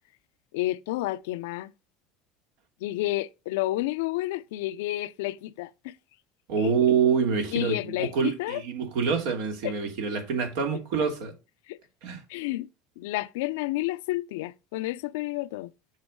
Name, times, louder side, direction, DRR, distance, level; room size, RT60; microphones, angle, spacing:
voice 1, 0.5-1.7 2.8-6.0 6.6-6.7 7.5-8.6 9.6-9.7 11.7-11.8 12.3-12.7 13.0-15.7, left 17 dB, 80° left, 0.5 m, -30 dB
voice 2, 6.5-11.3 12.0-12.2, right 6 dB, 75° right, 2.7 m, -26 dB
7.4 x 5.9 x 4.6 m
supercardioid pair, 100°, 0 cm